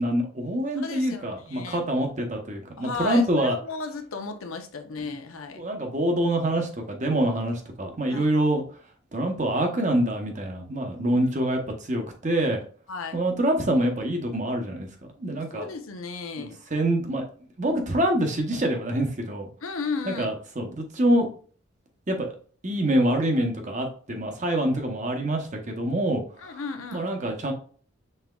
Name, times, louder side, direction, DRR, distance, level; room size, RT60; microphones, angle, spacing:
voice 1, 0.0-3.6 5.0-5.1 5.6-8.6 9.1-12.6 13.1-14.9 15.2-15.7 16.4-17.2 17.6-19.5 20.0-21.3 22.1-22.3 22.6-26.5 26.9-27.5, right 1 dB, 35° right, 0.8 m, -25 dB
voice 2, 0.8-1.8 2.8-5.6 8.1-8.3 10.9-11.2 12.9-13.2 15.5-16.6 19.6-20.3 26.4-27.0, left 4 dB, 80° left, 0.7 m, -34 dB
5.5 x 3.5 x 2.3 m
head